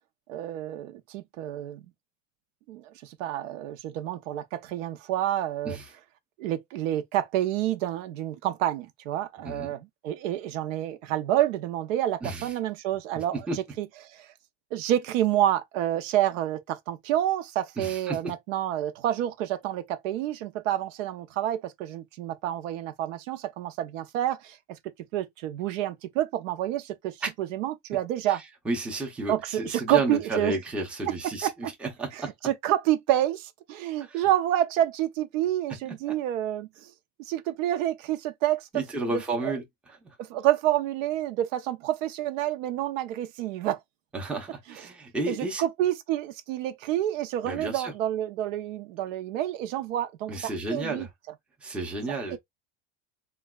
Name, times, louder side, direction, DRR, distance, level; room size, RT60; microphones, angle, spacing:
voice 1, 0.3-1.8 2.7-5.8 6.4-13.9 14.2-14.3 14.7-24.8 25.1-28.4 29.3-30.6 31.4-31.5 32.4-36.9 37.3-38.7 39.1-39.5 40.2-43.8 45.3-50.3 50.7-51.1 52.3-52.4, right 12 dB, 85° right, 0.7 m, -28 dB
voice 2, 9.4-9.8 12.2-12.5 13.1-13.6 17.8-18.3 27.2-27.3 28.3-32.3 34.0-34.2 36.1-36.2 38.7-40.2 44.1-45.6 47.4-47.9 50.3-51.1 51.6-52.4, right 2 dB, 5° right, 0.5 m, -32 dB
3.9 x 2.3 x 2.2 m
supercardioid pair, 160°, 37 cm